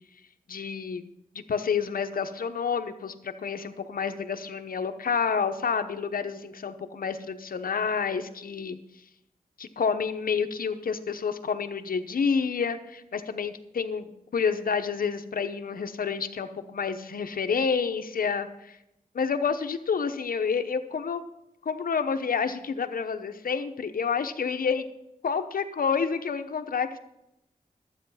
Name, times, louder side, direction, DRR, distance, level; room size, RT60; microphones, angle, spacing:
voice 1, 0.5-1.0 1.3-8.8 9.6-18.8 19.1-21.2 21.6-24.9 25.2-27.0, left 6 dB, 80° left, 8 dB, 0.9 m, -29 dB
12.0 x 8.5 x 5.6 m, 0.85 s
cardioid pair, 55°, 15 cm